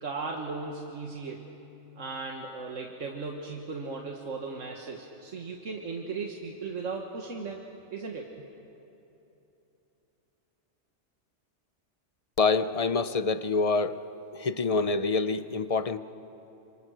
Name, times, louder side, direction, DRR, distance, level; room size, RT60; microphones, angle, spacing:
voice 1, 0.0-1.5 2.0-7.6 7.9-8.3, right 4 dB, 80° right, 1 dB, 1.8 m, -37 dB
voice 2, 12.4-14.0 14.3-16.0, left 4 dB, 35° left, 12 dB, 0.6 m, -26 dB
29.0 x 26.0 x 6.3 m, 3.0 s
omnidirectional pair, 1.3 m